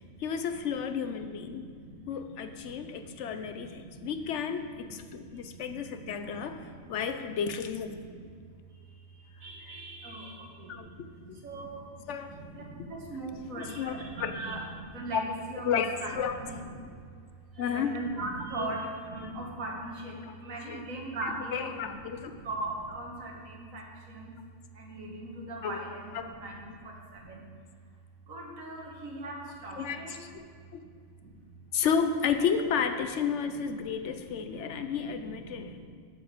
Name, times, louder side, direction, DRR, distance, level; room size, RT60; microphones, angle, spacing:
voice 1, 0.2-1.6 2.1-8.0 9.7-9.8 10.7-11.4 12.1-12.3 13.6-13.9 14.2-14.4 15.1-15.2 15.6-16.4 17.6-17.9 18.6-18.7 20.2-20.4 20.6-20.8 21.2-22.4 25.6-25.8 26.1-26.2 26.7-26.8 29.7-30.3 30.7-30.8 31.7-35.8, left 7 dB, 70° left, 8 dB, 0.8 m, -32 dB
voice 2, 0.9-2.0 2.3-4.2 4.5-7.0 7.3-7.4 7.9-8.2 8.9-10.9 11.2-15.7 16.0-16.1 16.4-17.0 17.5-24.3 24.7-27.4 28.3-30.1 30.8-30.9 31.2-31.3 33.4-35.8, right 2 dB, 80° right, -1 dB, 1.9 m, -41 dB
8.7 x 5.8 x 7.2 m, 2.1 s
omnidirectional pair, 1.4 m